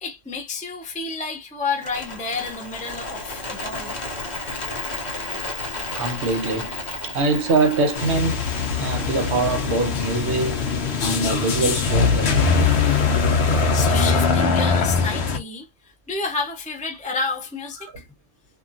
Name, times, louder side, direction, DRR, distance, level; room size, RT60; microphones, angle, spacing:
voice 1, 0.0-3.9 13.7-15.7 16.1-18.0, left 4 dB, 10° left, 0.4 m, -30 dB
Bird, 1.7-13.9, left 2 dB, 35° left, 1.0 m, -34 dB
voice 2, 6.0-6.8 7.0-8.4 8.8-10.7 11.0-12.5 17.8-17.9, right 3 dB, 65° right, 1.1 m, -23 dB
sound 1, 8.0-15.4, left 5 dB, 60° left, 0.9 m, -21 dB
2.8 x 2.6 x 2.5 m
omnidirectional pair, 1.3 m